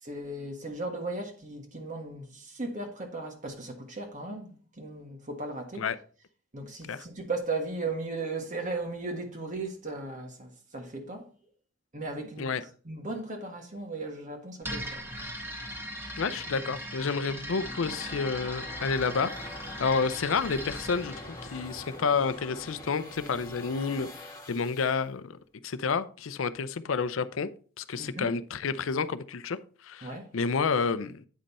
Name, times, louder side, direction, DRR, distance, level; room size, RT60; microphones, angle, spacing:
voice 1, 0.0-5.8 6.5-11.3 11.9-15.0 28.0-28.3 30.0-30.3, right 2 dB, 40° right, 1.5 m, -36 dB
sound 1, 14.6-22.4, equal, 10° right, 1.5 m, -39 dB
voice 2, 16.2-21.1 21.4-25.4 25.6-27.5 27.8-29.6 29.8-30.1 30.3-31.2, left 5 dB, 85° left, 0.6 m, -30 dB
sound 2, 17.3-25.0, left 2 dB, 20° left, 1.8 m, -45 dB
8.9 x 5.3 x 4.2 m
head